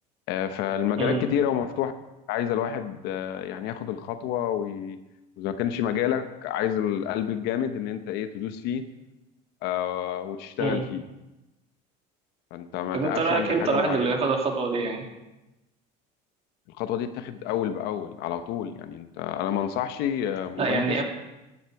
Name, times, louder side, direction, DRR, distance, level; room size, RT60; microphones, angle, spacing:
voice 1, 0.3-1.9 2.3-5.0 5.4-8.9 9.6-11.0 12.5-14.1 16.8-21.0, left 10 dB, 70° left, 9 dB, 1.0 m, -29 dB
voice 2, 12.9-15.0 20.6-21.0, right 4 dB, 35° right, 2 dB, 2.4 m, -25 dB
15.0 x 10.0 x 4.8 m, 0.99 s
cardioid pair, 135°, 18 cm